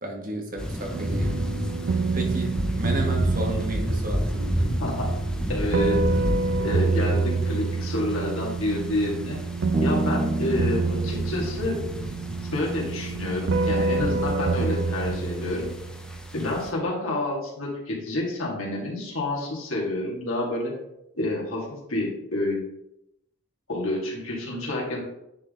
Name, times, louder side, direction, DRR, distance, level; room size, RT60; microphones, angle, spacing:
voice 1, 0.0-1.5 2.1-4.7, right 1 dB, 40° right, 1 dB, 1.3 m, -32 dB
sound 1, 0.6-16.7, equal, 5° left, 0.6 m, -32 dB
sound 2, 0.9-16.4, right 4 dB, 55° right, 0.3 m, -28 dB
voice 2, 4.6-5.2 5.5-6.1 6.6-9.4 9.8-11.8 12.5-15.7 16.3-20.7 21.2-22.7 23.7-25.0, left 1 dB, 75° left, -2 dB, 2.3 m, -28 dB
Bass guitar, 9.7-13.3, equal, 15° right, 1.3 m, -32 dB
9.6 x 3.8 x 3.8 m, 0.82 s
head